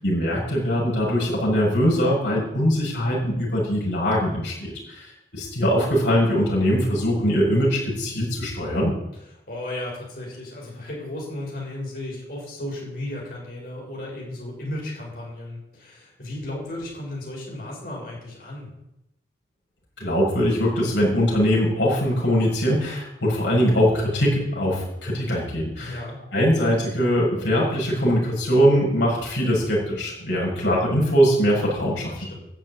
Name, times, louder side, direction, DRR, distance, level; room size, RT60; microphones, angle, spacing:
voice 1, 0.0-8.9 20.0-26.0 26.3-32.1, equal, 80° left, -4 dB, 7.1 m, -22 dB
voice 2, 9.5-18.7 25.8-26.2 32.1-32.4, left 1 dB, 55° left, -3 dB, 6.6 m, -34 dB
13.0 x 7.1 x 9.6 m, 0.88 s
head